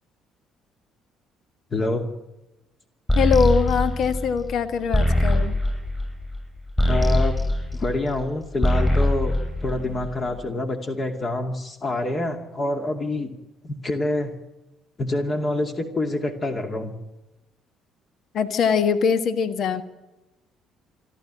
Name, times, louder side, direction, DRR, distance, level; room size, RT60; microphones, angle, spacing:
voice 1, 1.7-2.1 6.9-7.3 7.7-9.3 9.6-13.3 13.6-14.3 15.0-16.9, left 2 dB, 35° left, 4 dB, 2.5 m, -26 dB
voice 2, 3.1-5.5 18.3-19.8, left 6 dB, 50° left, 11 dB, 1.5 m, -22 dB
sound 1, 3.1-8.3 8.5-10.3, left 1 dB, 15° left, 8.0 m, -22 dB
28.0 x 11.5 x 9.0 m, 1.0 s
figure-of-eight pair, 50°, 0 cm